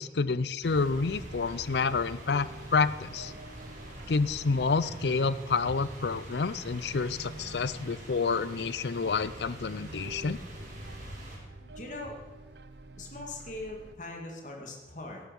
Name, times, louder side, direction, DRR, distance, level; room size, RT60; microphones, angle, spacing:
voice 1, 0.0-3.3 4.1-10.4, left 4 dB, 75° left, 16 dB, 0.5 m, -29 dB
sound 1, 0.6-11.4, equal, 45° right, 5.3 m, -46 dB
sound 2, 0.6-13.9, right 2 dB, 75° right, 0.6 m, -47 dB
voice 2, 11.6-12.2 13.0-15.2, left 2 dB, 45° left, 1 dB, 2.2 m, -41 dB
14.0 x 11.5 x 5.3 m, 1.3 s
head